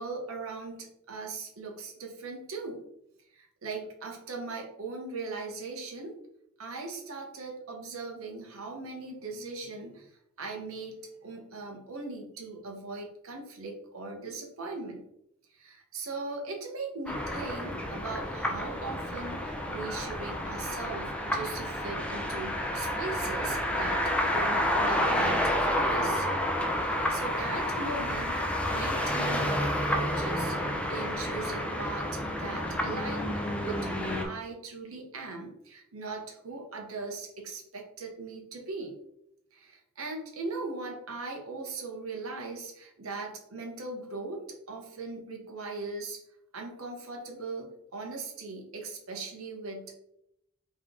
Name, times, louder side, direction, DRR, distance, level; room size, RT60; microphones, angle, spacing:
voice 1, 0.0-2.8 3.3-6.1 6.6-10.1 10.4-15.1 15.5-26.4 26.8-30.6 30.9-38.9 39.5-46.2 46.5-50.0, right 3 dB, 80° right, 1 dB, 1.0 m, -39 dB
sound 1, 17.1-34.3, left 1 dB, 5° left, 0.5 m, -30 dB
3.5 x 3.2 x 3.7 m, 0.77 s
head